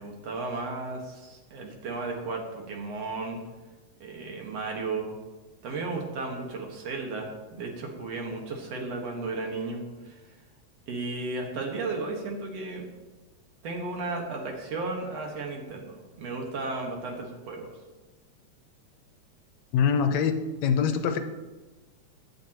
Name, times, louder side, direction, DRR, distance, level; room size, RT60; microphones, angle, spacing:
voice 1, 0.0-3.4 4.0-5.1 5.6-10.4 10.9-12.9 13.6-17.7, right 3 dB, 60° right, 1 dB, 2.6 m, -34 dB
voice 2, 19.7-20.4 20.6-21.2, left 7 dB, 80° left, 8 dB, 2.0 m, -23 dB
16.0 x 10.5 x 3.0 m, 1.2 s
omnidirectional pair, 3.3 m